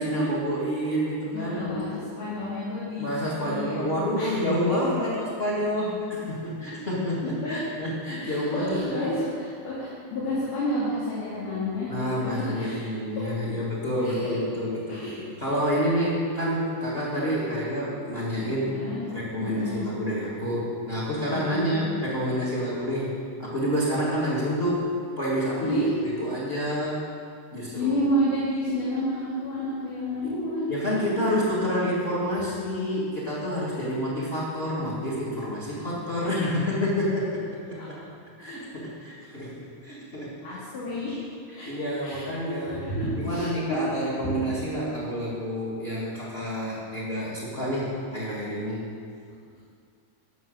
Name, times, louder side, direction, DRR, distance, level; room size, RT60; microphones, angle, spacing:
voice 1, 0.0-2.0 3.0-5.1 5.4-9.1 11.9-18.8 19.1-23.1 23.4-24.9 25.2-27.1 27.5-27.9 30.2-30.4 30.7-37.4 37.7-38.0 38.4-40.6 41.5-42.8 43.1-48.9, equal, 25° left, -6 dB, 1.7 m, -28 dB
voice 2, 1.3-3.1 3.4-3.8 4.2-4.4 7.2-7.6 8.2-12.9 14.0-14.4 14.9-15.2 18.7-19.0 19.4-19.9 21.3-21.9 25.6-25.9 27.8-31.3 40.4-41.2 41.6-42.3 42.7-44.4, left 1 dB, 80° left, -10 dB, 4.0 m, -30 dB
12.5 x 6.0 x 7.7 m, 2.3 s
omnidirectional pair, 3.6 m